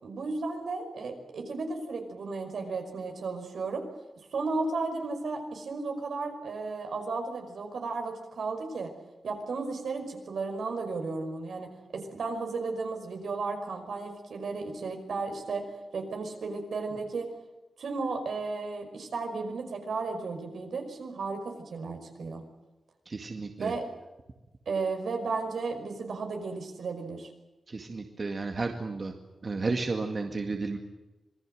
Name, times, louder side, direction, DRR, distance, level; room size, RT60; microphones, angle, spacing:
voice 1, 0.0-3.9 4.3-8.9 9.2-15.7 15.9-17.3 17.8-22.4 23.6-23.9 24.7-27.3, right 3 dB, 75° right, 4 dB, 5.3 m, -34 dB
voice 2, 23.1-23.7 27.7-29.1 29.4-30.8, right 3 dB, 40° right, 3 dB, 2.1 m, -32 dB
26.5 x 21.0 x 7.8 m, 1.1 s
wide cardioid pair, 155°, 0 cm